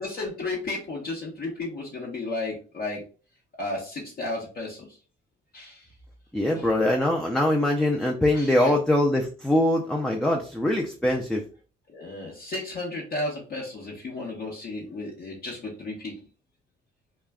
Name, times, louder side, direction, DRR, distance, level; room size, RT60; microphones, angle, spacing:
voice 1, 0.0-3.0 3.6-4.9 5.5-5.9 6.5-6.7 8.3-8.7 11.9-16.1, left 2 dB, 50° left, -5 dB, 0.8 m, -33 dB
voice 2, 6.3-11.4, left 1 dB, 5° left, 1 dB, 0.4 m, -23 dB
2.3 x 2.2 x 3.4 m, 0.38 s
cardioid pair, 90°, 20 cm